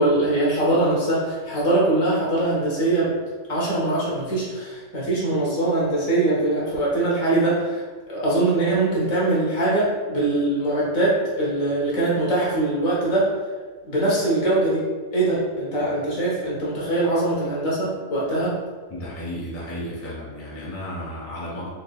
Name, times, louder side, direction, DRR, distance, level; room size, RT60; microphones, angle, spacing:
voice 1, 0.0-3.1 3.5-13.3 13.8-14.8 15.1-18.6, right 2 dB, 60° left, -6 dB, 1.5 m, -22 dB
voice 2, 18.9-21.7, left 1 dB, 15° left, -6 dB, 0.4 m, -33 dB
3.8 x 3.3 x 2.2 m, 1.4 s
omnidirectional pair, 1.6 m